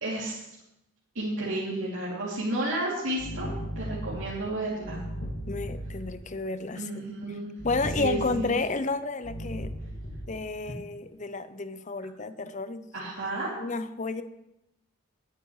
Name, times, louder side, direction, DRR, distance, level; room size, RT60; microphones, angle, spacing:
voice 1, 0.0-0.4 1.1-5.0 6.7-7.5 8.0-8.5 12.9-13.5, right 2 dB, 75° right, -7 dB, 2.9 m, -32 dB
sound 1, 3.2-6.2 7.6-8.7 9.2-10.5, equal, 85° left, 2.2 m, -36 dB
voice 2, 5.5-7.4 7.6-9.7 10.3-12.9 13.6-14.2, left 3 dB, 35° left, 12 dB, 0.7 m, -31 dB
20.0 x 9.3 x 3.2 m, 0.86 s
head